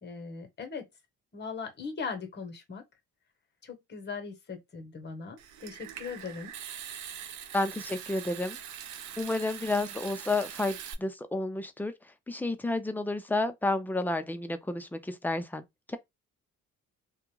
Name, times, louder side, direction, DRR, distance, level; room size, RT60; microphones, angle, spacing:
voice 1, 0.0-0.9 1.3-2.8 3.6-6.5, left 5 dB, 35° left, 1.0 m, -39 dB
Water tap faucet / Sink (filling or washing) / Trickle dribble, 5.4-10.9, right 9 dB, 75° right, 0.6 m, -43 dB
voice 2, 7.5-8.6 9.2-11.9 12.3-16.0, left 2 dB, 5° left, 0.4 m, -31 dB
2.4 x 2.2 x 3.0 m
cardioid pair, 90°, 30 cm